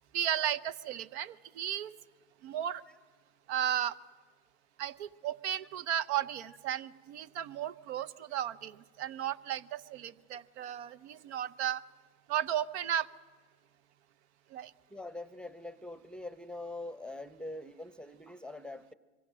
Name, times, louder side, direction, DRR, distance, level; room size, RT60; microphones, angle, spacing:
voice 1, 0.1-1.9 2.4-2.8 3.5-3.9 4.8-11.8 12.3-13.1 14.5-14.7, right 10 dB, 75° right, 16 dB, 0.8 m, -34 dB
voice 2, 14.9-18.9, left 2 dB, 5° left, 14 dB, 0.7 m, -43 dB
24.5 x 23.5 x 6.3 m, 1.5 s
hypercardioid pair, 95°, 34 cm